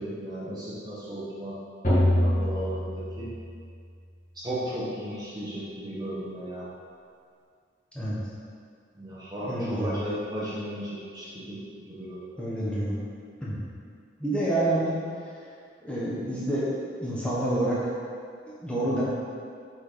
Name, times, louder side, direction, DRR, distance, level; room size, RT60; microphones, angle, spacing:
voice 1, 0.0-1.6 1.9-3.3 4.3-6.7 8.9-12.2, right 1 dB, 20° right, -8 dB, 1.1 m, -35 dB
sound 1, 1.8-3.8, left 1 dB, 45° left, 1.8 m, -25 dB
voice 2, 9.4-10.0 12.4-13.0 13.4-13.6 14.2-14.9 15.8-17.8 18.5-19.0, right 1 dB, 5° left, -9 dB, 1.3 m, -28 dB
6.2 x 4.3 x 5.0 m, 2.2 s
head